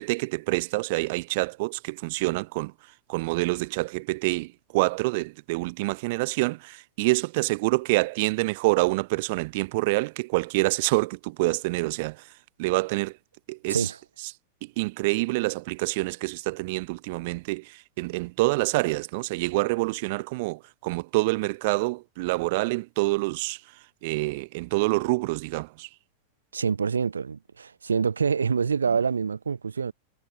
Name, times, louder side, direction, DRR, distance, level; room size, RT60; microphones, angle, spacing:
voice 1, 0.0-2.7 3.1-12.2 12.6-13.2 13.5-13.9 14.6-23.6 24.0-25.9, right 24 dB, 50° right, 1.1 m, -27 dB
voice 2, 26.5-29.9, right 6 dB, 75° right, 1.4 m, -26 dB
figure-of-eight pair, 90°, 0 cm